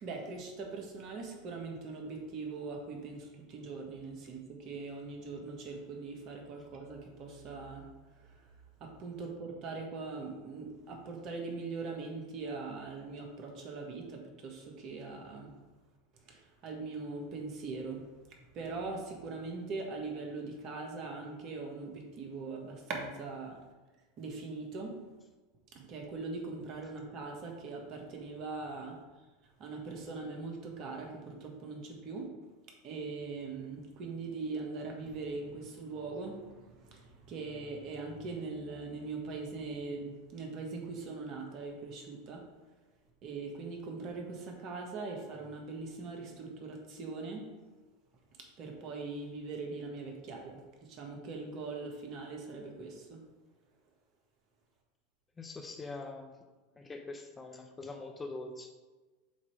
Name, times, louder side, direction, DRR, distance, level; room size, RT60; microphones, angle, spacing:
voice 1, 0.0-7.8 8.3-8.4 8.8-15.5 16.2-18.1 18.5-23.6 24.2-25.0 25.7-29.0 29.6-32.3 32.8-42.4 43.2-47.5 48.6-50.6 50.9-53.2, right 3 dB, 45° right, 1 dB, 1.5 m, -41 dB
voice 2, 55.4-56.3 56.8-58.7, left 3 dB, 20° left, 4 dB, 0.7 m, -43 dB
7.2 x 3.0 x 4.6 m, 1.2 s
hypercardioid pair, 95°, 0 cm